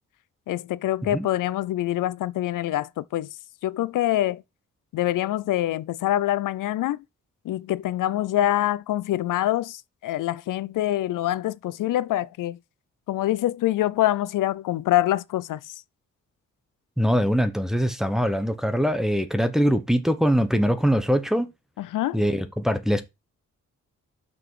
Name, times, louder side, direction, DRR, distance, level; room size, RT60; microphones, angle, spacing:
voice 1, 0.5-3.3 3.6-4.4 4.9-7.0 7.5-12.6 13.1-15.7 21.8-22.2, left 14 dB, 90° left, 0.5 m, -25 dB
voice 2, 17.0-21.5 22.1-23.0, equal, ahead, 0.8 m, -22 dB
6.0 x 5.1 x 4.7 m
wide cardioid pair, 155°, 31 cm